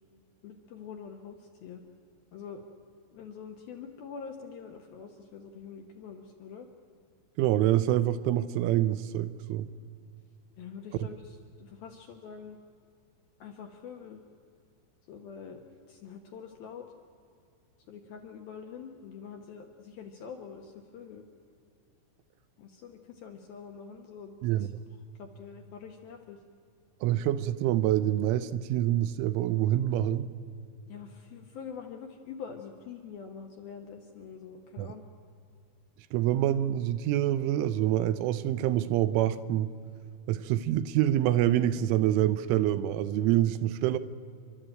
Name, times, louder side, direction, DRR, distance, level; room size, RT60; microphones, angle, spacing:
voice 1, 0.4-1.8 2.3-2.6 3.1-6.7 10.6-12.6 13.4-14.2 15.1-15.6 15.9-16.9 17.9-21.2 22.6-24.7 25.2-26.4 30.9-35.1, left 6 dB, 70° left, 3 dB, 2.4 m, -45 dB
voice 2, 7.4-9.7 11.0-11.1 24.4-24.7 27.0-30.3 34.8-34.9 36.1-39.7 40.3-44.0, right 12 dB, 80° right, 12 dB, 3.0 m, -26 dB
29.5 x 12.5 x 9.0 m, 2.4 s
omnidirectional pair, 5.9 m